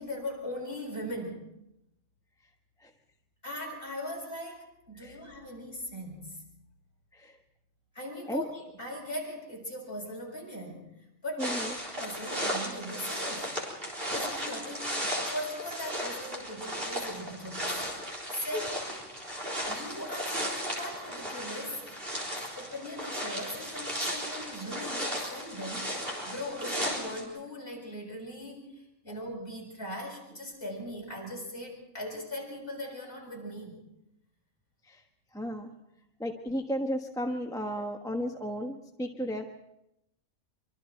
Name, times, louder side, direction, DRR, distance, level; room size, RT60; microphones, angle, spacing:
voice 1, 0.0-1.4 3.4-6.4 7.9-11.7 12.0-13.6 14.1-15.0 15.3-17.9 18.3-19.0 19.7-22.2 22.6-28.7 29.0-33.8, left 1 dB, 40° left, -2 dB, 7.5 m, -39 dB
voice 2, 11.4-11.7 18.5-18.6 34.8-35.0 35.3-35.7 36.2-39.4, equal, 5° left, 2 dB, 1.1 m, -34 dB
sound 1, 11.4-27.2, equal, 40° right, 4.3 m, -35 dB
25.0 x 25.0 x 4.5 m, 0.84 s
omnidirectional pair, 1.5 m